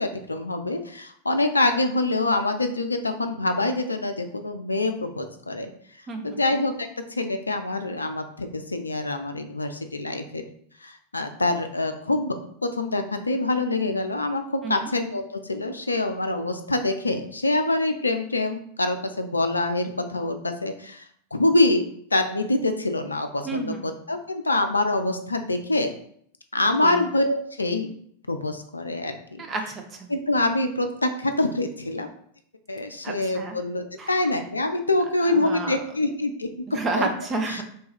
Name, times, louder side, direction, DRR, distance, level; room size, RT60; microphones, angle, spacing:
voice 1, 0.0-5.7 6.2-10.4 10.8-12.4 12.6-21.0 21.3-25.9 26.5-27.9 28.3-29.4 30.1-32.1 32.7-36.5 37.0-37.1 37.5-37.6, left 2 dB, 80° left, 7 dB, 0.4 m, -25 dB
voice 2, 6.1-6.4 14.6-14.9 23.4-23.9 26.8-27.0 29.5-29.8 33.0-33.6 34.0-34.1 35.3-35.8 36.7-37.6, right 3 dB, 25° right, 3 dB, 0.6 m, -30 dB
3.2 x 2.3 x 4.3 m, 0.64 s
figure-of-eight pair, 90°, 0 cm